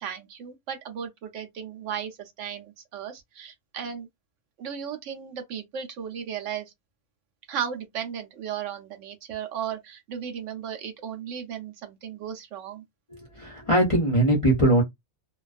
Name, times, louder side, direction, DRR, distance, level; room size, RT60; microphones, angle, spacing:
voice 1, 0.0-4.1 4.6-6.7 7.5-12.8, right 8 dB, 70° right, 0.9 m, -35 dB
voice 2, 13.1-14.8, right 1 dB, 35° left, 0.5 m, -21 dB
2.3 x 2.3 x 2.4 m
omnidirectional pair, 1.4 m